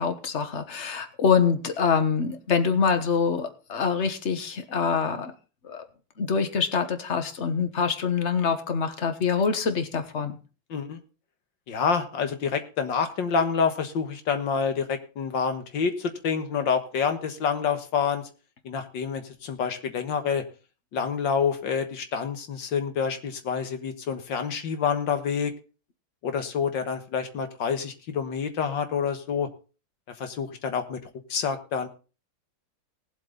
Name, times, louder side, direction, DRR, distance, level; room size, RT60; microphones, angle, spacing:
voice 1, 0.0-5.3 5.6-5.8 6.2-10.4, left 6 dB, 40° left, 9 dB, 1.4 m, -25 dB
voice 2, 10.7-11.0 11.7-18.2 18.6-20.4 20.9-25.5 26.2-29.5 30.2-31.9, left 6 dB, 70° left, 8 dB, 2.0 m, -27 dB
18.5 x 7.8 x 4.0 m, 0.34 s
omnidirectional pair, 2.1 m